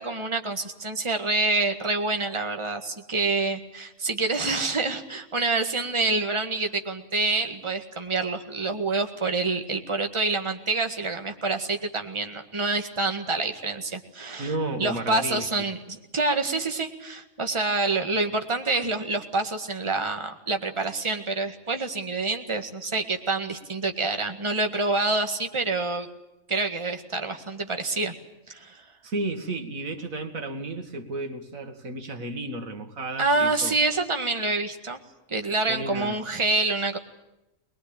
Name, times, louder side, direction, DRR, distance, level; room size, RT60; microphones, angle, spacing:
voice 1, 0.0-14.5 14.8-26.1 26.5-28.1 28.5-28.8 33.2-35.0 35.3-37.0, right 3 dB, 20° right, 5 dB, 1.8 m, -27 dB
voice 2, 14.4-15.5 18.7-18.8 29.0-33.8 35.7-36.2, right 2 dB, 85° right, 7 dB, 2.4 m, -32 dB
23.0 x 21.5 x 8.9 m, 0.90 s
omnidirectional pair, 1.4 m